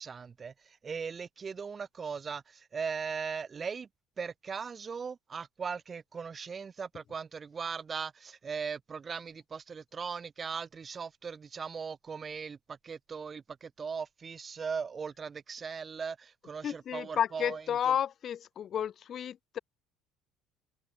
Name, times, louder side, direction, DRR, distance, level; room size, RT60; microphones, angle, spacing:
voice 1, 0.0-3.9 4.2-17.9, right 6 dB, 30° right, 2.3 m, -39 dB
voice 2, 16.6-19.6, left 9 dB, 45° left, 7.6 m, -32 dB
cardioid pair, 115°, 0 cm